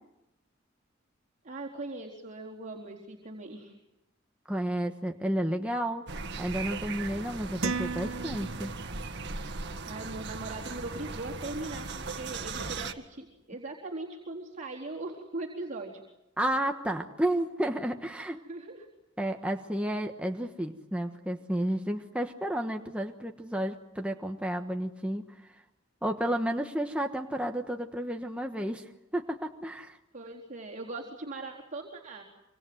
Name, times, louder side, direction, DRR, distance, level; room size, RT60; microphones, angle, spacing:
voice 1, 1.4-3.8 9.9-15.9 18.5-18.9 30.1-32.2, right 2 dB, 40° right, -2 dB, 4.0 m, -40 dB
voice 2, 4.5-6.0 6.4-8.7 16.4-18.4 19.2-25.5 26.0-28.8 29.1-30.0, right 1 dB, 5° right, 3 dB, 1.3 m, -31 dB
sound 1, 6.1-12.9, right 3 dB, 60° right, 1.9 m, -38 dB
sound 2, 7.6-9.1, right 4 dB, 85° right, 1.1 m, -35 dB
26.0 x 26.0 x 7.9 m, 0.92 s
head